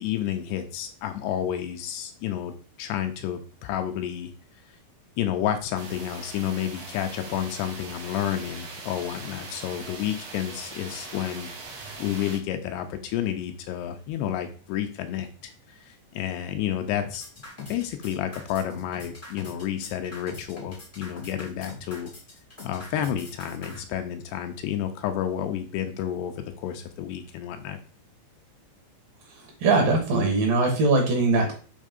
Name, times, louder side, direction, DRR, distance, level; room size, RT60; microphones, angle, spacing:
voice 1, 0.0-2.5 2.8-4.3 5.2-11.5 12.0-17.3 17.6-22.1 22.6-27.8, left 10 dB, 85° left, 6 dB, 2.7 m, -30 dB
sound 1, 5.7-12.4, right 3 dB, 80° right, 1.1 m, -41 dB
sound 2, 17.0-23.8, left 2 dB, 40° left, 0.6 m, -43 dB
voice 2, 29.6-31.5, right 3 dB, 60° right, 2 dB, 2.9 m, -21 dB
7.5 x 3.4 x 5.2 m, 0.38 s
omnidirectional pair, 5.0 m